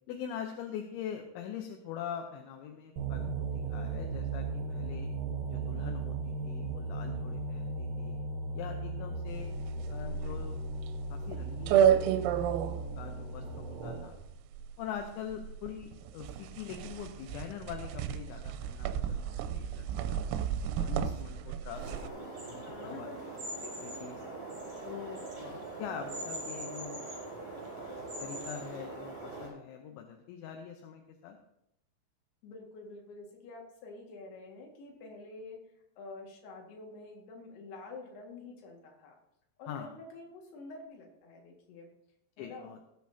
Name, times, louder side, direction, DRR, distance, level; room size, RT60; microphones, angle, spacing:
voice 1, 0.1-3.2 3.5-5.1 5.5-8.2 8.5-9.5 9.9-10.6 11.1-14.2 14.8-20.2 20.8-23.1 23.6-24.2 24.9-27.0 28.2-31.4 39.7-39.9 42.4-42.8, left 8 dB, 80° left, 4 dB, 2.9 m, -43 dB
sound 1, 3.0-14.2, right 3 dB, 65° right, 2.2 m, -37 dB
sound 2, 9.3-22.1, right 9 dB, 85° right, 3.3 m, -32 dB
sound 3, 21.7-29.5, right 2 dB, 35° right, 5.0 m, -42 dB
voice 2, 22.6-23.3 32.4-35.6 36.0-39.1 39.6-41.9 42.4-42.7, left 3 dB, 60° left, 0 dB, 3.4 m, -48 dB
18.5 x 8.4 x 2.7 m, 0.81 s
omnidirectional pair, 6.0 m